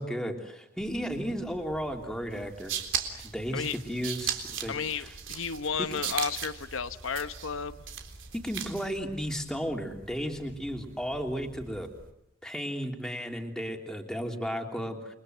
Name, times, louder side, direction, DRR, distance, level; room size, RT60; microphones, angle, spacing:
voice 1, 0.0-2.7 3.3-5.1 5.8-5.9 8.3-11.9 12.4-15.2, equal, 5° left, 3 dB, 3.1 m, -34 dB
sound 1, 0.8-12.1, right 1 dB, 45° right, 3.5 m, -51 dB
sound 2, 2.4-9.0, right 9 dB, 70° right, 3.7 m, -36 dB
voice 2, 4.7-7.8, left 6 dB, 80° left, 11 dB, 1.0 m, -33 dB
29.5 x 23.5 x 8.0 m, 0.83 s
head